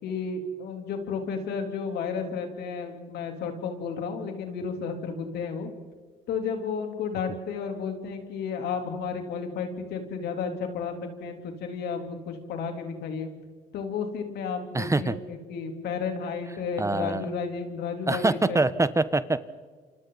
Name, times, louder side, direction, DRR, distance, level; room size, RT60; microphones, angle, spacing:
voice 1, 0.0-5.7 6.3-11.0 11.2-13.3 13.7-18.6, left 5 dB, 75° left, 4 dB, 3.6 m, -32 dB
voice 2, 14.7-15.1 16.8-17.3 18.1-19.4, right 2 dB, 15° right, 14 dB, 1.0 m, -24 dB
28.5 x 26.0 x 4.1 m, 1.5 s
supercardioid pair, 70°, 17 cm